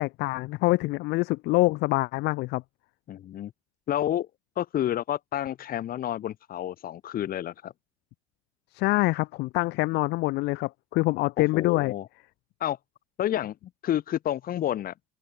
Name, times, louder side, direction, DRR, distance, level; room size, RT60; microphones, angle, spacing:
voice 1, 0.0-2.6 8.7-11.9, left 21 dB, 70° left, 1.6 m, -25 dB
voice 2, 3.1-3.5 3.9-4.3 4.6-7.7 11.4-12.1 12.6-12.8 13.2-14.9, left 11 dB, 55° left, 6.8 m, -30 dB
open air
supercardioid pair, 85°, 18 cm